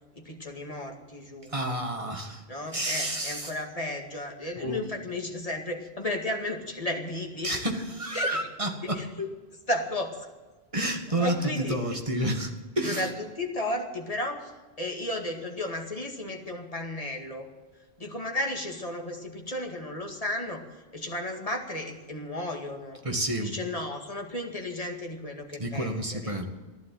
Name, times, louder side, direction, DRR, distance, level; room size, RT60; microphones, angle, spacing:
voice 1, 0.2-1.5 2.5-7.6 8.1-8.4 8.8-9.1 9.7-10.3 11.2-11.8 12.8-14.5 14.8-17.5 18.0-20.6 20.9-23.0 23.4-26.4, left 1 dB, 35° left, 2 dB, 2.2 m, -34 dB
voice 2, 1.5-2.4 2.7-3.5 4.6-4.8 7.4-9.3 10.7-13.1 23.0-23.5 25.6-26.4, right 1 dB, 30° right, 3 dB, 2.0 m, -30 dB
15.5 x 11.5 x 7.8 m, 1.2 s
omnidirectional pair, 1.0 m